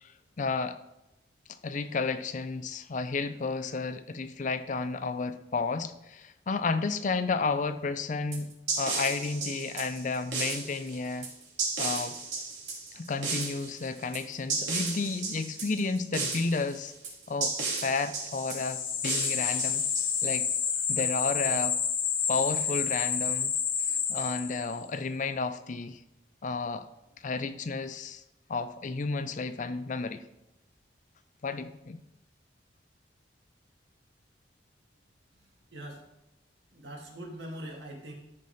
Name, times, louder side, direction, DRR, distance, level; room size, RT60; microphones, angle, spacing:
voice 1, 0.4-0.8 1.6-8.5 8.8-11.3 11.8-12.2 12.9-16.9 17.3-19.8 20.2-20.5 20.9-21.8 22.3-23.5 23.9-26.0 26.4-26.9 27.2-28.2 28.5-30.2 31.4-32.0, left 4 dB, 45° left, 11 dB, 0.5 m, -32 dB
sound 1, 8.3-20.5, right 4 dB, 90° right, 2.5 m, -34 dB
sound 2, 18.3-24.8, left 7 dB, 85° left, 0.9 m, -29 dB
voice 2, 35.7-36.0 36.7-38.1, right 1 dB, 70° right, -1 dB, 2.0 m, -42 dB
13.5 x 5.4 x 3.3 m, 0.90 s
head